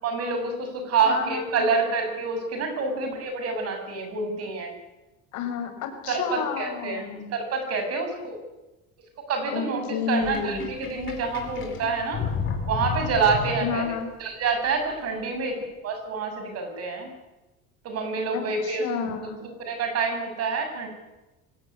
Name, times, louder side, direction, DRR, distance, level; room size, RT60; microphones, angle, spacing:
voice 1, 0.0-4.7 6.1-8.4 9.3-9.8 10.1-12.2 12.7-17.1 17.8-18.9 19.6-20.9, right 4 dB, 50° right, 6 dB, 7.2 m, -27 dB
voice 2, 1.0-1.7 5.3-7.3 9.5-10.7 13.6-14.1 18.3-19.4, left 6 dB, 65° left, 6 dB, 5.8 m, -31 dB
Sink (filling or washing), 10.2-14.0, left 5 dB, 40° left, 5.1 m, -32 dB
24.0 x 17.5 x 9.9 m, 1.0 s
cardioid pair, 140°, 32 cm